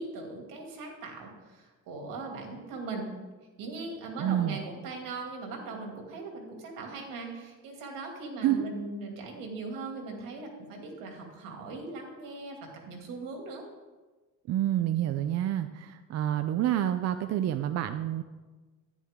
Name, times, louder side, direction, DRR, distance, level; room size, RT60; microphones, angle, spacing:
voice 1, 0.0-3.1 3.6-13.6, right 3 dB, 80° right, 1 dB, 2.4 m, -39 dB
voice 2, 4.2-4.6 8.4-8.7 14.5-18.2, right 11 dB, 50° right, 9 dB, 0.5 m, -28 dB
10.5 x 10.0 x 3.6 m, 1.3 s
cardioid pair, 140°, 32 cm